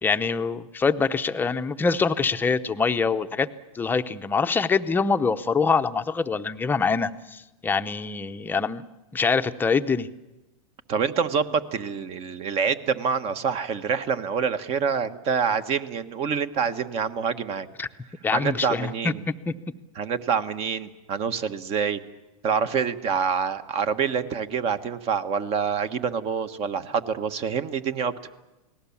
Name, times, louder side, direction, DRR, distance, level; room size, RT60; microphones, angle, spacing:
voice 1, 0.0-3.5 3.7-8.8 9.1-10.1 17.8-17.9 18.2-18.9 19.3-19.5, left 5 dB, 10° left, 9 dB, 0.8 m, -24 dB
voice 2, 10.9-17.7 18.3-19.2 19.9-22.0 22.4-28.1, right 6 dB, 35° right, 11 dB, 1.3 m, -26 dB
28.5 x 19.0 x 7.2 m, 1.0 s
hypercardioid pair, 130°, 18 cm